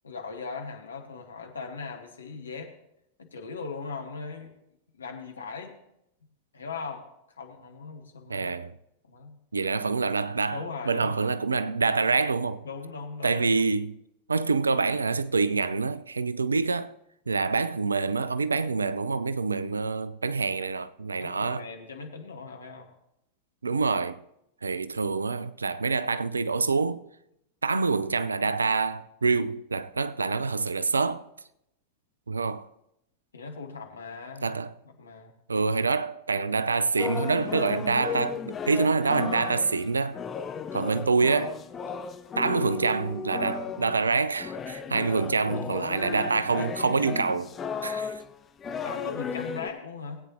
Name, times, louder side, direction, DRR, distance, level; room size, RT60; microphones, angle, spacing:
voice 1, 0.0-2.7 3.2-4.5 4.9-5.7 6.5-7.0 7.4-8.5 9.1-9.4 10.5-11.3 12.6-13.6 21.1-22.9 33.3-34.5 34.8-35.3 40.8-41.1 48.8-50.2, left 4 dB, 70° left, 1.4 m, -39 dB
voice 2, 8.3-8.7 9.5-12.6 13.2-14.0 14.3-16.9 17.3-21.7 23.6-24.2 24.6-27.0 27.6-31.3 32.3-32.7 34.4-34.7 35.5-40.2 40.7-41.6 42.4-47.5 47.8-48.1, right 4 dB, 75° right, 0.4 m, -26 dB
sound 1, 37.0-49.7, left 6 dB, 25° left, 0.7 m, -35 dB
19.0 x 8.7 x 2.8 m
figure-of-eight pair, 90°, 0 cm